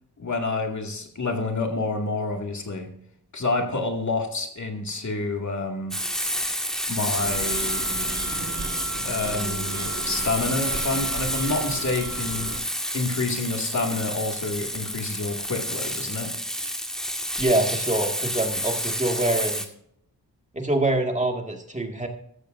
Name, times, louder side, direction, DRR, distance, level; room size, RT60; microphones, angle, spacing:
voice 1, 0.2-2.9 3.3-6.0 6.9-7.9 9.0-12.5 12.9-16.3, left 3 dB, 50° left, 2 dB, 2.3 m, -28 dB
Frying (food), 5.9-19.7, equal, ahead, 1.8 m, -29 dB
sound 1, 7.2-12.6, right 4 dB, 45° right, 1.9 m, -35 dB
voice 2, 17.4-19.6 20.5-22.1, right 2 dB, 20° right, 2 dB, 2.1 m, -25 dB
14.0 x 14.0 x 2.6 m, 0.68 s
cardioid pair, 75°, 38 cm